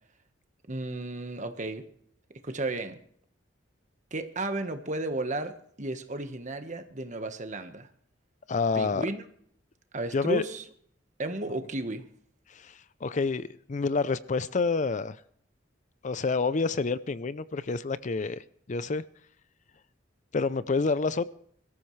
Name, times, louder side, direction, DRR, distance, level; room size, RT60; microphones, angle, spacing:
voice 1, 0.7-1.8 2.4-3.0 4.1-7.9 8.7-9.2 9.9-10.6 11.2-12.0, right 2 dB, 40° right, 7 dB, 1.4 m, -33 dB
voice 2, 8.5-9.1 10.1-10.5 12.5-15.2 16.0-19.0 20.3-21.3, left 4 dB, 40° left, 16 dB, 0.5 m, -28 dB
23.0 x 13.5 x 3.2 m, 0.64 s
head